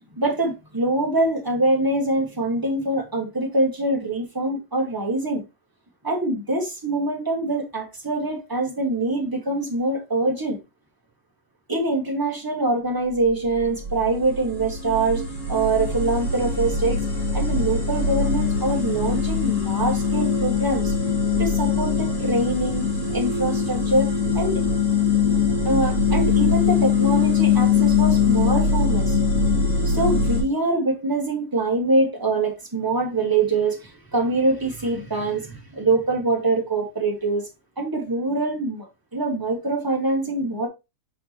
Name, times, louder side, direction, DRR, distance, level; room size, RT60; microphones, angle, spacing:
voice 1, 0.1-5.4 6.0-10.6 11.7-15.2 15.5-17.0 17.3-20.9 21.4-22.9 23.1-24.6 25.6-29.2 29.8-37.5 37.8-38.9 39.1-40.7, right 2 dB, 10° right, 1.1 m, -24 dB
sound 1, 13.2-30.4, left 5 dB, 25° left, 2.8 m, -22 dB
7.6 x 4.7 x 3.0 m
omnidirectional pair, 3.4 m